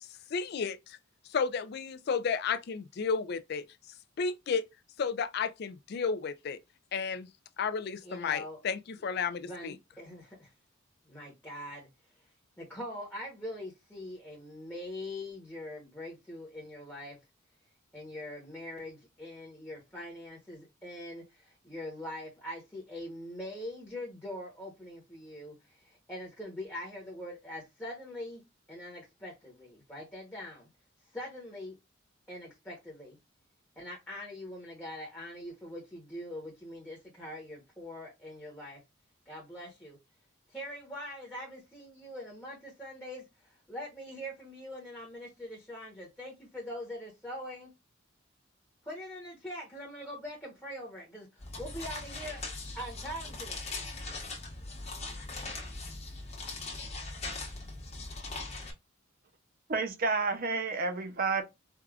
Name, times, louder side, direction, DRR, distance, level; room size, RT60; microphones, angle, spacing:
voice 1, 0.3-0.8 1.3-3.6 4.2-4.6 5.0-6.6 6.9-7.3 7.6-9.7, left 5 dB, 50° left, 0.4 m, -32 dB
voice 2, 8.0-8.6 9.4-10.5 11.1-11.9 12.6-17.2 17.9-28.4 28.7-30.7 31.1-31.7 32.3-33.2 33.8-38.8 39.3-40.0 40.5-43.2 43.7-47.7 48.8-52.5 52.7-53.6, left 1 dB, 10° left, 0.9 m, -43 dB
sound 1, 51.4-58.7, left 3 dB, 30° left, 1.1 m, -40 dB
voice 3, 59.7-61.4, right 4 dB, 45° right, 0.6 m, -30 dB
4.6 x 2.3 x 2.4 m
head